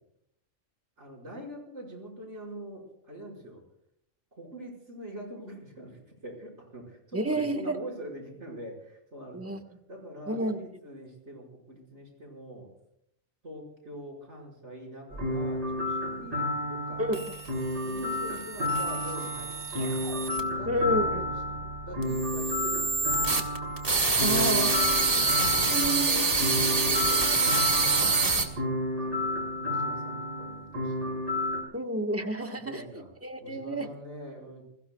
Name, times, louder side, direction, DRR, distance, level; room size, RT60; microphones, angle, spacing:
voice 1, 1.0-3.6 4.3-12.7 13.4-17.1 17.9-20.0 20.5-23.5 25.0-28.1 29.0-31.1 32.4-33.1 33.4-34.6, right 1 dB, 80° right, -1 dB, 5.9 m, -44 dB
voice 2, 7.1-7.8 9.3-9.6 10.3-10.6 17.0-17.2 20.7-21.2 24.2-24.8 25.7-26.5 31.7-32.8 33.2-33.9, right 1 dB, 10° right, 4 dB, 1.4 m, -30 dB
sound 1, 15.1-31.6, left 1 dB, 50° right, 5.0 m, -31 dB
sound 2, 17.1-20.4 22.0-28.4, right 3 dB, 30° right, 1.7 m, -27 dB
sound 3, 19.4-26.7, left 1 dB, 55° left, 2.4 m, -47 dB
29.0 x 21.0 x 2.3 m, 0.73 s
omnidirectional pair, 1.2 m